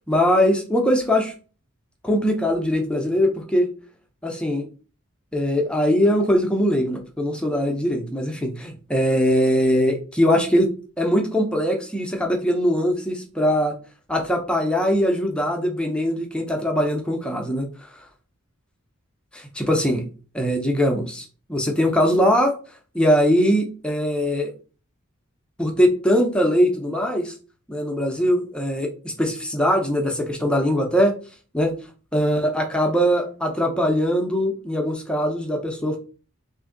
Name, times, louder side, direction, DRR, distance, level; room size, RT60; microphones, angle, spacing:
voice 1, 0.1-1.3 2.0-3.7 4.2-4.6 5.3-10.7 11.0-13.7 14.1-17.9 19.3-20.0 20.3-22.5 22.9-24.5 25.6-27.4 27.7-31.2 31.5-31.7 32.1-36.0, equal, 5° left, 2 dB, 0.5 m, -21 dB
3.1 x 2.5 x 3.7 m, 0.37 s
head